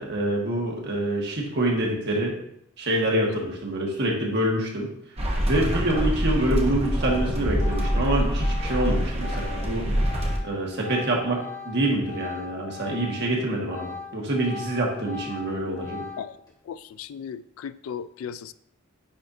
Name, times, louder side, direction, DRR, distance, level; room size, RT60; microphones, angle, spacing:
voice 1, 0.0-2.3 2.8-4.9 5.5-9.9 10.4-16.0, right 1 dB, 50° right, -2 dB, 1.6 m, -26 dB
sound 1, 5.2-10.4, equal, 30° right, 1.0 m, -25 dB
Organ, 7.0-13.3 13.6-16.5, left 5 dB, 15° left, 2.0 m, -40 dB
voice 2, 16.7-18.5, left 7 dB, 75° left, 15 dB, 0.3 m, -36 dB
9.5 x 4.3 x 2.7 m, 0.74 s
head